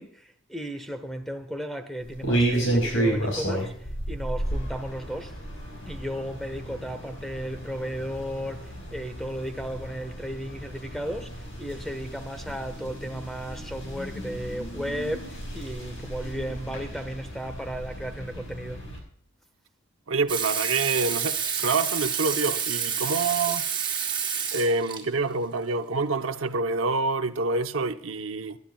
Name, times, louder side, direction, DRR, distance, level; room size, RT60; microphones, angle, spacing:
voice 1, 0.0-5.3 5.9-18.8, equal, ahead, 1.2 m, -35 dB
sound 1, 2.0-19.0, right 1 dB, 70° left, 5.6 m, -32 dB
voice 2, 20.1-23.7 24.5-28.6, right 3 dB, 80° right, 0.8 m, -27 dB
Water tap faucet / Sink (filling or washing), 20.3-25.0 26.5-26.6, right 7 dB, 25° right, 4.0 m, -29 dB
24.5 x 12.0 x 2.3 m
head